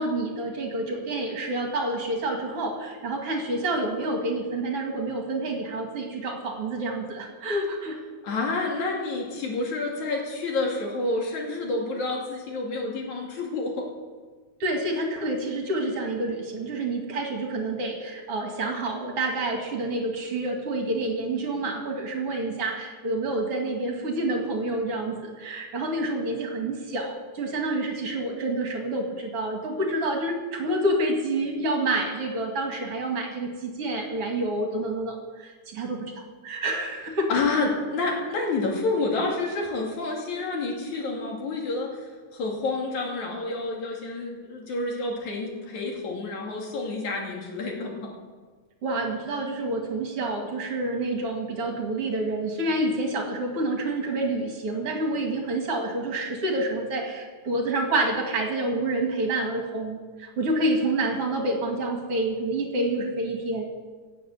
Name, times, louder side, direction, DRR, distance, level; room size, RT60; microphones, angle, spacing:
voice 1, 0.0-8.0 14.6-36.1 36.4-37.3 48.8-63.7, right 2 dB, 55° right, 2 dB, 2.8 m, -28 dB
voice 2, 8.2-13.9 37.3-42.0 42.3-48.1, left 3 dB, 80° left, -1 dB, 4.0 m, -29 dB
17.0 x 7.8 x 8.3 m, 1.4 s
omnidirectional pair, 3.3 m